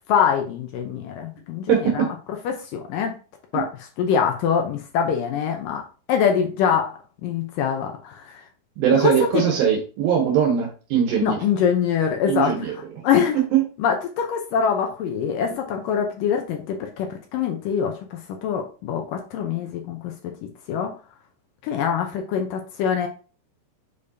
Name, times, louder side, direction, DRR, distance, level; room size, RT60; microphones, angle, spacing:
voice 1, 0.1-2.1 2.5-3.2 3.5-5.8 6.1-8.4 8.9-9.4 11.2-13.4 13.8-20.1 20.7-20.9 21.6-23.1, left 7 dB, 75° left, 3 dB, 2.1 m, -24 dB
voice 2, 1.7-2.1 3.5-3.6 8.8-11.4 12.3-12.7 13.5-13.6, right 8 dB, 75° right, 1 dB, 2.7 m, -21 dB
6.9 x 5.0 x 2.7 m, 0.37 s
omnidirectional pair, 4.5 m